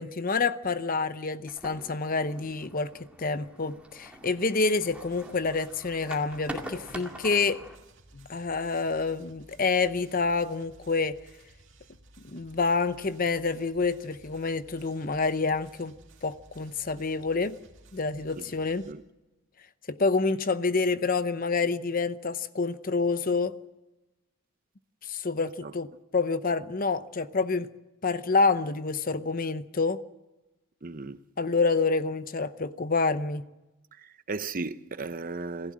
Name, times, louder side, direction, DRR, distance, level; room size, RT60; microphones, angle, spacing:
voice 1, 0.0-2.9 3.2-7.6 8.1-11.2 12.2-15.9 16.2-17.6 17.9-18.9 19.9-23.6 25.0-27.7 28.0-30.0 31.4-33.4, left 4 dB, 40° left, 0.7 m, -28 dB
sound 1, 1.5-7.8, right 1 dB, 5° right, 2.2 m, -44 dB
sound 2, 4.9-18.9, right 2 dB, 55° right, 2.6 m, -56 dB
voice 2, 30.8-31.2 34.0-35.7, right 3 dB, 40° right, 0.8 m, -35 dB
27.5 x 15.5 x 7.5 m
head